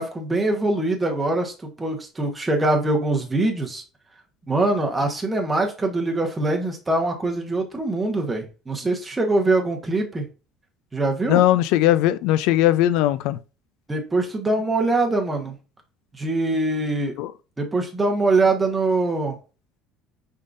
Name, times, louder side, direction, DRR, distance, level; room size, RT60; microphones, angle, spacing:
voice 1, 0.0-3.8 4.5-10.3 10.9-11.4 13.9-15.5 16.2-17.1 17.6-19.4, right 2 dB, 10° right, 1.0 m, -23 dB
voice 2, 11.3-13.4 17.2-17.3, left 13 dB, 70° left, 0.4 m, -19 dB
5.5 x 3.6 x 2.5 m
cardioid pair, 145°, 0 cm